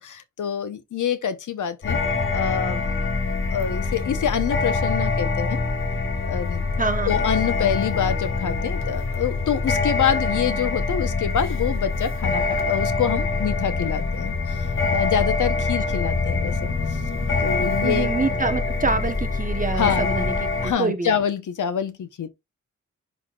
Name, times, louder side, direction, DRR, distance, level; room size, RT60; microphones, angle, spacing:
voice 1, 0.0-2.0 2.3-2.9 3.5-5.6 6.3-6.7 7.1-14.3 14.9-16.7 17.4-18.1 19.8-20.1 20.6-22.3, left 8 dB, 85° left, 1.0 m, -26 dB
sound 1, 1.8-20.7, left 3 dB, 45° left, 1.3 m, -24 dB
voice 2, 6.8-7.1 17.8-21.1, right 4 dB, 25° right, 1.0 m, -26 dB
11.0 x 4.1 x 2.4 m
wide cardioid pair, 170°, 30 cm